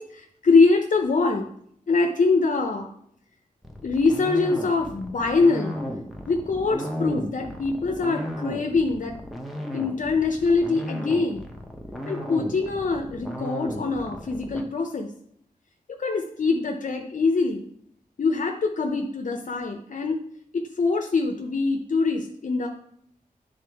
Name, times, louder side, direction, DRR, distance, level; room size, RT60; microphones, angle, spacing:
voice 1, 0.0-1.5 1.9-2.9 3.8-5.7 6.3-9.2 9.7-11.5 12.1-15.1 15.9-17.7 18.2-20.2 20.5-22.7, left 4 dB, 60° left, 3 dB, 0.6 m, -23 dB
sound 1, 3.6-14.6, equal, ahead, 0.8 m, -34 dB
9.4 x 3.8 x 3.4 m, 0.68 s
wide cardioid pair, 105°, 15 cm